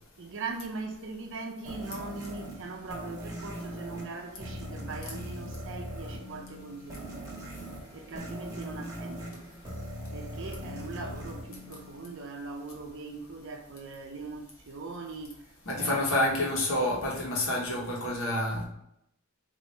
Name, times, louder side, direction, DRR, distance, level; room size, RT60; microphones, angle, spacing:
voice 1, 0.2-7.4 7.9-9.4 10.1-15.3 15.7-16.1, right 3 dB, 60° right, 0.6 m, -40 dB
sound 1, 1.7-12.4, equal, 15° right, 1.1 m, -40 dB
voice 2, 15.6-18.7, left 1 dB, 65° left, 1.2 m, -28 dB
4.0 x 2.7 x 3.2 m
head